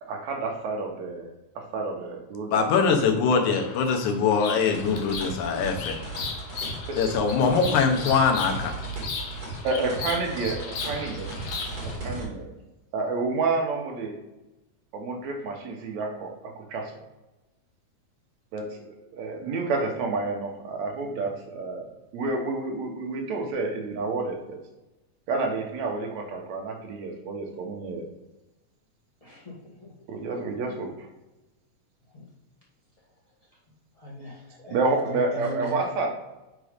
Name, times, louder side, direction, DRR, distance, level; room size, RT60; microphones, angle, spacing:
voice 1, 0.0-1.3 1.6-3.4 6.9-7.0 7.6-7.8 9.6-11.3 11.8-12.5 12.9-14.2 14.9-16.9 18.5-24.6 25.3-28.1 30.1-31.1 34.7-36.1, right 3 dB, 75° right, 2 dB, 2.2 m, -30 dB
voice 2, 2.5-6.0 7.0-8.7, left 5 dB, 90° left, 4 dB, 2.3 m, -23 dB
Bird vocalization bird call bird song, 3.5-12.0, left 4 dB, 70° left, 2.0 m, -37 dB
sound 1, 4.7-12.2, right 2 dB, 50° right, 2.7 m, -36 dB
voice 3, 29.2-29.5 29.8-29.9 32.1-32.3 34.0-35.8, left 2 dB, 25° left, -6 dB, 0.7 m, -39 dB
6.1 x 4.0 x 5.0 m, 1.0 s
omnidirectional pair, 3.3 m